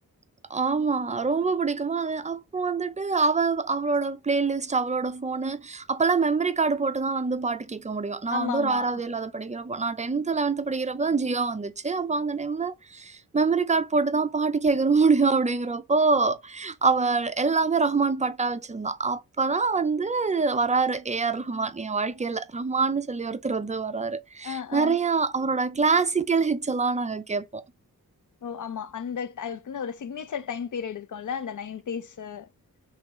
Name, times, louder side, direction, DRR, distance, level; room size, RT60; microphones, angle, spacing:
voice 1, 0.5-27.6, right 4 dB, 20° right, 0.4 m, -25 dB
voice 2, 8.3-8.9 24.4-25.0 28.4-32.5, left 7 dB, 55° left, 0.6 m, -33 dB
3.2 x 2.9 x 3.8 m
cardioid pair, 45°, 38 cm